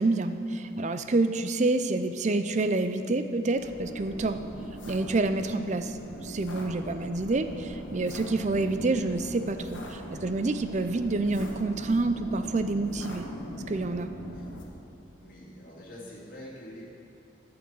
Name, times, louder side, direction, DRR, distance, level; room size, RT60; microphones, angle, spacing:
voice 1, 0.0-4.4 4.9-13.3 13.7-14.1, right 2 dB, 40° right, 9 dB, 0.5 m, -28 dB
sound 1, 3.6-14.6, equal, 80° left, 1.6 m, -42 dB
voice 2, 15.2-16.8, left 1 dB, 45° left, -6 dB, 2.7 m, -45 dB
11.0 x 6.0 x 7.6 m, 2.9 s
head